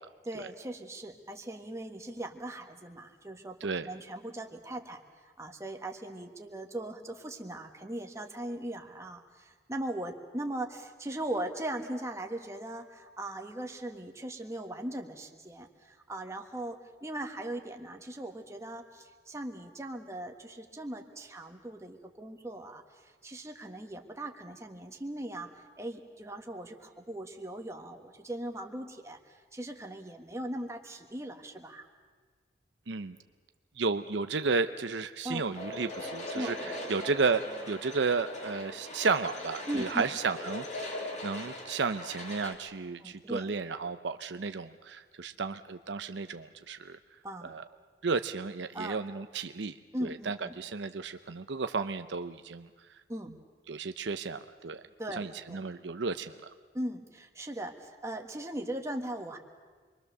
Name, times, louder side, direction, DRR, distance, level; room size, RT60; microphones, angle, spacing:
voice 1, 0.2-3.6 3.8-5.0 5.4-25.5 25.8-31.9 35.2-35.4 36.3-36.8 39.7-40.1 43.0-43.5 47.2-47.5 48.7-49.0 49.9-50.6 53.1-53.3 55.0-55.6 56.7-59.4, right 1 dB, 15° right, 3 dB, 1.5 m, -39 dB
voice 2, 32.9-33.2 33.8-47.0 47.4-47.6 48.0-49.7 50.0-52.7 53.7-54.8 55.2-56.5, right 4 dB, 70° right, 9 dB, 0.7 m, -33 dB
sound 1, 35.5-42.5, left 1 dB, 40° left, 2.4 m, -40 dB
27.5 x 23.0 x 6.8 m, 1.5 s
head